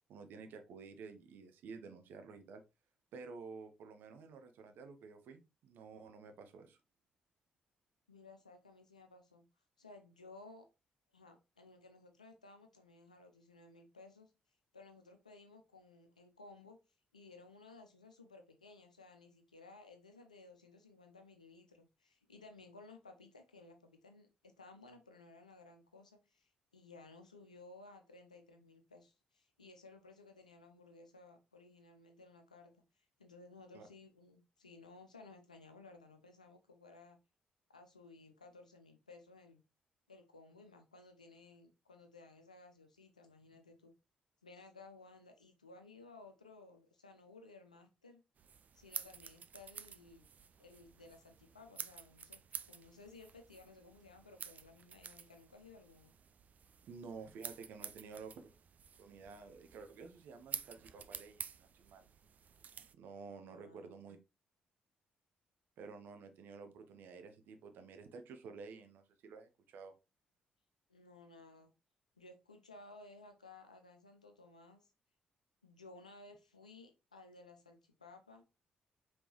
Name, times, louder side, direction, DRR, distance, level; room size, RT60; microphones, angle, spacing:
voice 1, 0.1-2.6 3.1-6.8 33.7-33.9 56.9-58.5 59.0-62.1 62.9-64.2 65.8-69.9, right 5 dB, 60° right, 0.8 m, -51 dB
voice 2, 8.1-9.4 9.8-10.7 11.1-14.3 14.7-16.8 17.1-37.2 37.7-39.6 40.1-43.9 44.4-48.2 48.7-50.3 50.6-52.4 52.7-56.1 63.5-64.1 70.9-71.7 72.2-74.8 75.6-78.4, left 3 dB, 85° left, 0.6 m, -58 dB
sound 1, 48.4-62.9, right 7 dB, 40° right, 0.4 m, -50 dB
5.2 x 3.2 x 3.0 m
figure-of-eight pair, 40°, 4 cm